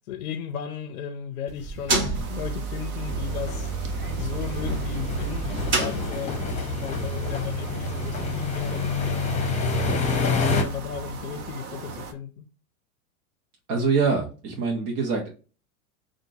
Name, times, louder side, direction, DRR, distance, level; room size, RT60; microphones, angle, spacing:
voice 1, 0.1-3.7 4.1-6.4 6.8-9.3 9.6-10.0 10.4-12.5, left 8 dB, 85° left, 0.7 m, -35 dB
sound 1, 1.5-6.6, right 3 dB, 25° right, 1.4 m, -30 dB
sound 2, 2.1-12.1, right 4 dB, 85° right, 1.0 m, -40 dB
sound 3, 3.0-10.6, left 3 dB, 15° left, 1.0 m, -28 dB
voice 2, 13.7-15.3, right 4 dB, 45° right, 1.2 m, -24 dB
5.8 x 2.6 x 2.7 m
hypercardioid pair, 115°, 43 cm